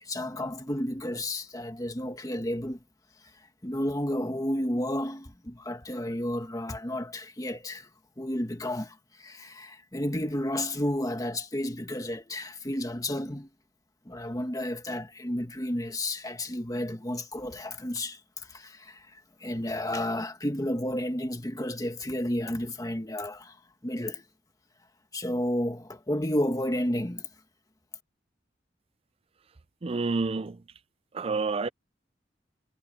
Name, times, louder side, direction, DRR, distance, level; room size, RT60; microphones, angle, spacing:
voice 1, 0.0-2.8 3.6-7.9 8.2-13.5 14.0-23.6 23.8-24.2 25.1-27.3, left 1 dB, 20° left, 1.7 m, -32 dB
voice 2, 29.8-30.6 31.1-31.7, right 4 dB, 30° right, 0.5 m, -28 dB
head